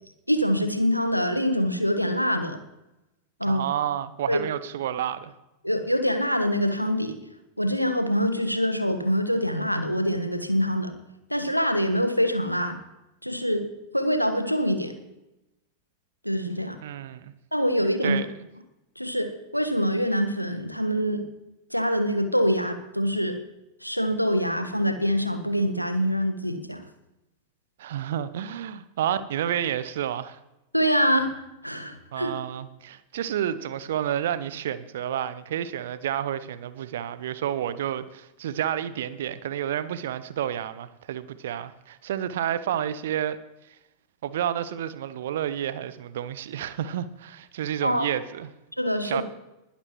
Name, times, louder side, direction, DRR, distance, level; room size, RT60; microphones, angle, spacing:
voice 1, 0.3-2.6 3.4-3.7 4.3-4.4 5.6-7.2 7.6-10.9 11.3-12.8 13.2-13.7 13.9-14.9 16.2-16.8 17.5-18.2 19.0-21.2 21.7-23.4 23.8-26.8 30.7-31.3 31.6-32.3 47.8-48.1 48.8-49.2, equal, 90° left, 8 dB, 1.3 m, -25 dB
voice 2, 3.4-5.3 16.8-17.3 18.0-18.3 27.8-30.4 32.1-43.4 43.7-43.8 44.2-48.5 49.0-49.2, right 10 dB, 60° right, 15 dB, 0.8 m, -30 dB
20.5 x 11.5 x 3.1 m, 0.93 s
figure-of-eight pair, 90°, 0 cm